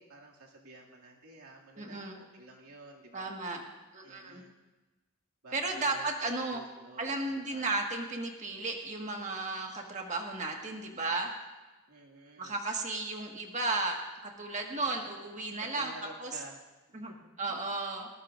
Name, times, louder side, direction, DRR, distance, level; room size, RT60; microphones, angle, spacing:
voice 1, 0.0-3.4 4.0-4.5 5.4-7.7 11.9-12.6 14.8-14.9 15.6-16.6 17.1-17.8, right 2 dB, 85° right, -2 dB, 2.4 m, -51 dB
voice 2, 1.8-2.2 3.1-3.6 3.9-4.4 5.5-6.6 7.0-11.3 12.4-15.9 16.2-16.4 16.9-18.1, right 2 dB, 35° right, 1 dB, 1.6 m, -34 dB
19.5 x 19.0 x 2.6 m, 1.2 s
head